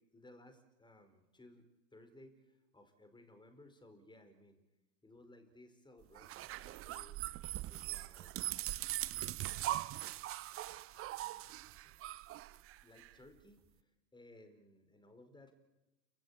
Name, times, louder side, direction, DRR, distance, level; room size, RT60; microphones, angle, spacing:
voice 1, 0.0-1.7 1.9-4.6 5.0-7.2 7.7-8.9 10.9-11.4 11.7-15.5, left 1 dB, 10° left, 8 dB, 4.5 m, -61 dB
sound 1, 6.1-13.1, right 15 dB, 30° right, 0.8 m, -41 dB
29.0 x 16.0 x 8.7 m, 0.99 s
hypercardioid pair, 100°, 49 cm